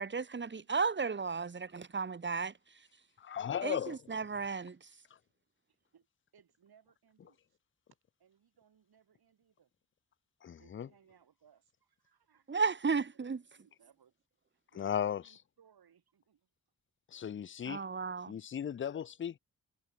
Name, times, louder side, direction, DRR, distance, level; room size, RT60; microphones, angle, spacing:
voice 1, 0.0-2.5 3.6-4.8 12.5-13.4 17.7-18.3, right 5 dB, 30° right, 1.0 m, -34 dB
voice 2, 3.2-4.0 10.4-10.9 14.8-15.2 17.1-17.8 18.3-19.4, left 9 dB, 35° left, 0.4 m, -36 dB
voice 3, 5.7-6.1 6.3-7.6 8.2-9.7 10.6-12.6 13.1-13.2 13.5-14.1 14.5-16.5 17.1-17.3, right 8 dB, 85° right, 7.3 m, -67 dB
cardioid pair, 75°, 37 cm